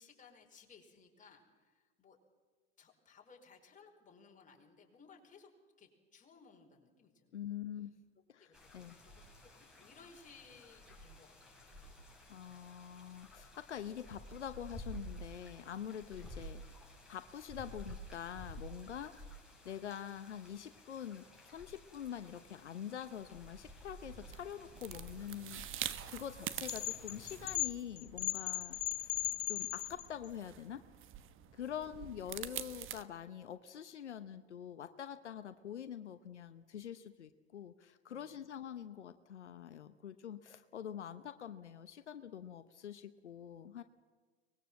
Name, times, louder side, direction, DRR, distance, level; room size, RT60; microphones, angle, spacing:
voice 1, 0.0-2.2 2.8-5.5 5.8-7.6 8.4-12.0 16.1-16.3 31.5-31.7 38.1-38.3, left 5 dB, 25° left, 1 dB, 5.1 m, -61 dB
voice 2, 7.3-7.9 8.3-9.0 12.3-19.1 19.6-29.2 29.5-30.8 31.5-43.8, left 9 dB, 85° left, 10 dB, 1.0 m, -45 dB
sound 1, 8.5-27.6, equal, ahead, 5.9 m, -53 dB
sound 2, 24.1-33.0, right 11 dB, 35° right, 1.3 m, -47 dB
sound 3, 26.7-30.3, left 20 dB, 65° left, 0.8 m, -37 dB
24.0 x 20.5 x 7.6 m, 1.4 s
hypercardioid pair, 90°, 34 cm